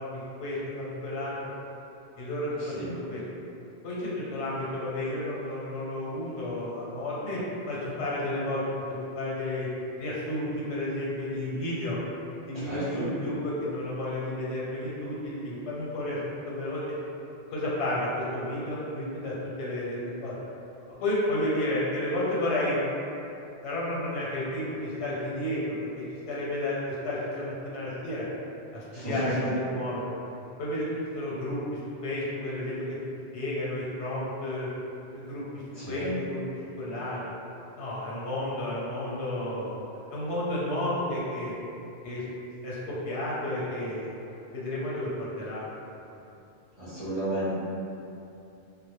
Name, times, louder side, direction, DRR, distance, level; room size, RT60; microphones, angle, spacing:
voice 1, 0.0-1.4 2.2-2.8 3.1-3.2 3.8-9.7 10.0-12.0 12.5-16.8 17.5-20.3 21.0-22.8 23.6-28.3 28.7-30.0 30.6-30.9 31.1-31.6 32.0-33.0 33.3-34.7 35.1-35.4 35.9-36.4 36.8-37.2 37.8-39.8 40.1-41.5 42.0-42.2 42.6-45.6, left 1 dB, 90° left, -7 dB, 0.9 m, -32 dB
voice 2, 2.6-2.9 12.5-13.0 28.9-29.1 35.7-36.1 46.8-47.6, right 1 dB, 35° right, -14 dB, 0.8 m, -33 dB
2.1 x 2.0 x 3.0 m, 2.8 s
omnidirectional pair, 1.1 m